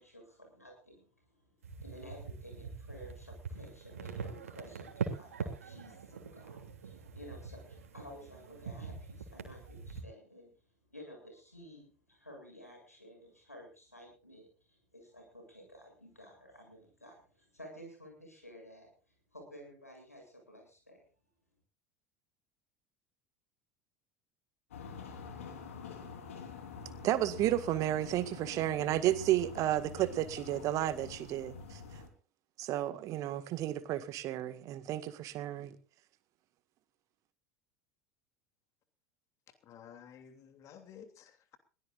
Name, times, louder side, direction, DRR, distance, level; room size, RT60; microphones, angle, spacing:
voice 1, 0.0-10.5 10.9-18.9 19.3-21.0, equal, 85° left, 7.8 m, -53 dB
sound 1, 1.6-10.0, right 5 dB, 70° right, 2.9 m, -43 dB
sound 2, 24.7-32.1, left 6 dB, 65° left, 3.8 m, -47 dB
voice 2, 27.0-31.8 32.6-35.8, right 13 dB, 45° right, 1.8 m, -32 dB
voice 3, 39.7-41.6, left 8 dB, 40° left, 3.0 m, -53 dB
22.5 x 17.5 x 2.5 m
figure-of-eight pair, 75°, 8 cm